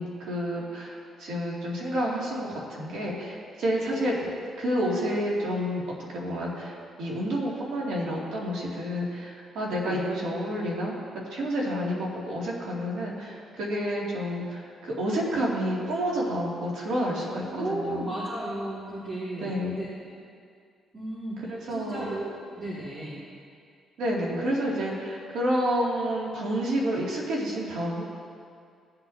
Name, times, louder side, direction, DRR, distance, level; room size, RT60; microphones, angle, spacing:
voice 1, 0.0-4.2 4.6-5.8 6.1-10.9 11.3-18.0 19.4-19.8 21.5-22.2 24.0-28.0, equal, 80° right, -4 dB, 2.7 m, -29 dB
voice 2, 9.6-10.0 17.5-20.2 20.9-23.2 24.3-24.4, right 1 dB, 40° right, -8 dB, 2.6 m, -35 dB
17.0 x 7.9 x 2.9 m, 2.2 s
cardioid pair, 90°, 0 cm